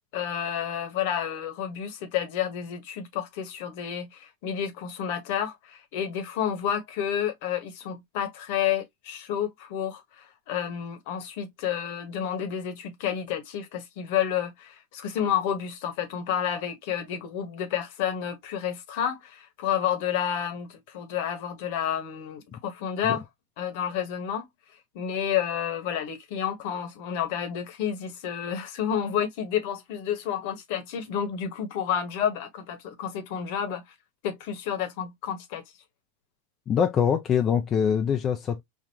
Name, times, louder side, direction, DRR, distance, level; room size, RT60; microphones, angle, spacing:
voice 1, 0.1-23.2 23.6-24.5 24.9-33.8 34.2-35.6, left 9 dB, 55° left, 1.1 m, -30 dB
voice 2, 36.7-38.6, left 7 dB, 30° left, 0.5 m, -24 dB
4.5 x 2.4 x 2.7 m
hypercardioid pair, 95°, 0 cm